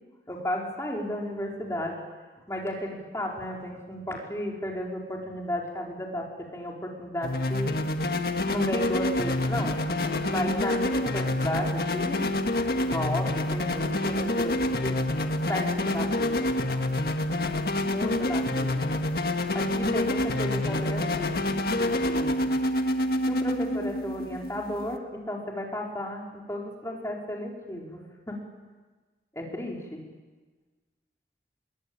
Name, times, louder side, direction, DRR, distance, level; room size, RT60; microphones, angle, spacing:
voice 1, 0.3-2.0 2.5-7.7 8.5-9.8 10.3-12.3 12.8-15.0 15.5-16.5 17.8-18.8 19.5-21.4 21.8-22.5 23.3-28.4 29.3-30.0, left 1 dB, 15° left, -1 dB, 4.7 m, -34 dB
sound 1, 7.2-25.0, left 1 dB, 60° left, 1.8 m, -27 dB
28.5 x 22.5 x 8.8 m, 1.3 s
head